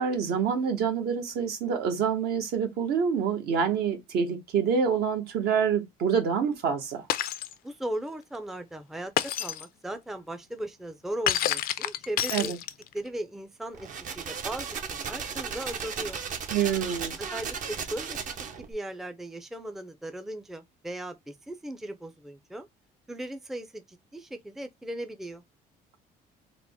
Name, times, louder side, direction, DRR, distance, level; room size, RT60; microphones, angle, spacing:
voice 1, 0.0-7.1 12.3-12.6 16.5-17.2, right 6 dB, 70° right, 1.1 m, -27 dB
Shatter, 7.1-7.5 9.2-9.6 11.3-13.0, left 12 dB, 60° left, 0.4 m, -28 dB
voice 2, 7.6-12.5 12.9-13.9 14.2-16.2 17.2-18.2 18.6-22.7 23.1-25.4, right 1 dB, ahead, 0.4 m, -37 dB
sound 1, 13.7-18.7, right 6 dB, 50° right, 0.7 m, -35 dB
3.7 x 2.1 x 3.4 m
cardioid pair, 110°, 17 cm